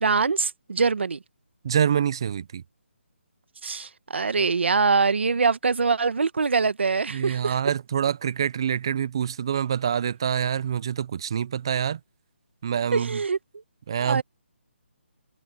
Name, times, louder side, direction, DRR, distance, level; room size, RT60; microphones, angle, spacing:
voice 1, 0.0-1.2 3.6-7.6 12.9-13.4 14.0-14.2, right 4 dB, 60° right, 1.4 m, -23 dB
voice 2, 1.6-2.6 7.1-12.0 12.6-13.2 13.9-14.2, right 8 dB, 20° right, 0.4 m, -26 dB
hypercardioid pair, 175°, 7 cm